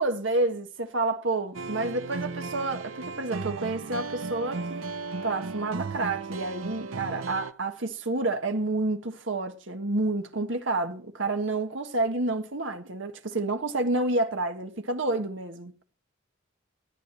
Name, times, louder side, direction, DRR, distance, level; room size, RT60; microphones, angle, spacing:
voice 1, 0.0-4.8 5.2-15.7, right 2 dB, 65° right, 1.6 m, -29 dB
sound 1, 1.5-7.5, right 4 dB, 90° right, 0.9 m, -35 dB
14.5 x 9.4 x 7.3 m
head